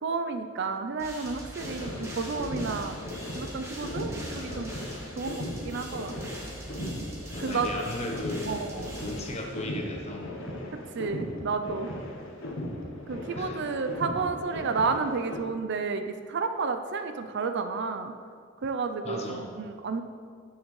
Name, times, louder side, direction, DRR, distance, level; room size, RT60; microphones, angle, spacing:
voice 1, 0.0-3.0 3.4-4.7 5.2-6.2 6.8-7.1 7.4-7.7 8.5-8.9 10.9-11.9 13.1-18.1 18.6-20.0, right 4 dB, 55° right, 8 dB, 0.5 m, -31 dB
sound 1, 1.0-9.8, equal, 15° right, 1.4 m, -42 dB
sound 2, 1.6-15.4, left 1 dB, 65° left, 1.1 m, -38 dB
voice 2, 4.2-4.9 7.3-8.6 9.0-10.4 13.4-13.6 19.0-19.5, left 1 dB, 30° left, 1 dB, 0.9 m, -37 dB
9.4 x 6.5 x 3.2 m, 2.1 s
head